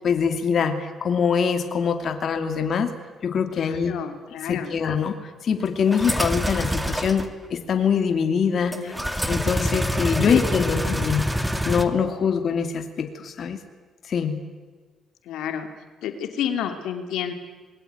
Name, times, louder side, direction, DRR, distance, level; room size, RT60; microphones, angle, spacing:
voice 1, 0.0-2.9 3.2-3.9 4.5-8.7 9.3-11.3 11.6-13.6 14.1-14.4, left 6 dB, 55° left, 7 dB, 2.7 m, -24 dB
voice 2, 3.6-4.7 8.6-9.0 10.3-10.4 10.7-10.8 15.3-15.7 16.0-17.3, left 9 dB, 85° left, 7 dB, 2.7 m, -30 dB
sound 1, 5.9-7.3 8.7-11.8, equal, 5° right, 2.2 m, -26 dB
26.5 x 22.0 x 9.5 m, 1.4 s
cardioid pair, 90°, 0 cm